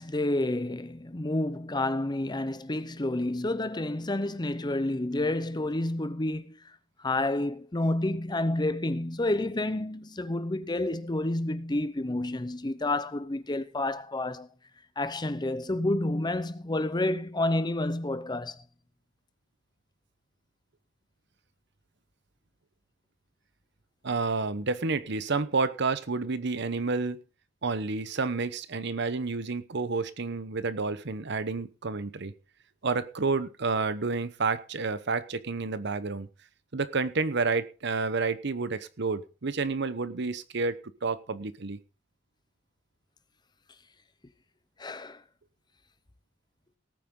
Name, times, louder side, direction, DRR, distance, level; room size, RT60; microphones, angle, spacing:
voice 1, 0.0-6.7 7.0-14.5 15.0-18.6 44.8-45.2, left 1 dB, 20° left, 0.7 m, -29 dB
voice 2, 24.0-27.2 27.6-32.3 32.8-36.3 36.7-40.7 41.0-41.8, right 4 dB, 60° right, 0.9 m, -30 dB
18.5 x 9.2 x 3.8 m
head